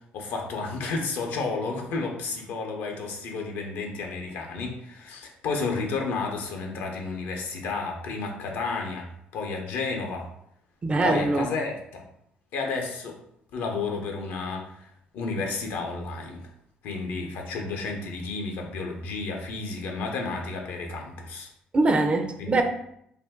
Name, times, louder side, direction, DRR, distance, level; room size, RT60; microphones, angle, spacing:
voice 1, 0.1-9.1 9.3-10.3 11.0-12.1 12.5-13.2 13.5-16.5 16.8-21.5 22.4-22.6, left 4 dB, 75° left, 2 dB, 0.6 m, -31 dB
voice 2, 10.8-11.4 21.7-22.6, right 2 dB, 30° right, 5 dB, 0.4 m, -22 dB
2.5 x 2.2 x 3.4 m, 0.73 s
supercardioid pair, 75°, 4 cm